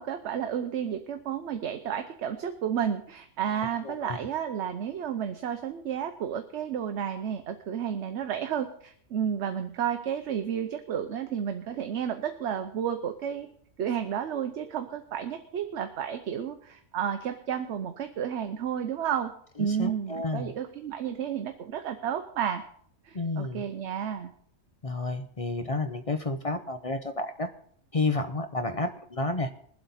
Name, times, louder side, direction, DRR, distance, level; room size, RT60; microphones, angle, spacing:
voice 1, 0.0-13.5 13.8-19.3 19.6-22.6 23.0-24.3, right 8 dB, 60° right, 7 dB, 1.0 m, -32 dB
voice 2, 3.8-4.2 19.6-20.5 23.1-23.6 24.8-27.5 27.9-29.5, left 2 dB, 35° left, 7 dB, 0.6 m, -31 dB
21.5 x 7.9 x 4.1 m, 0.62 s
omnidirectional pair, 1.4 m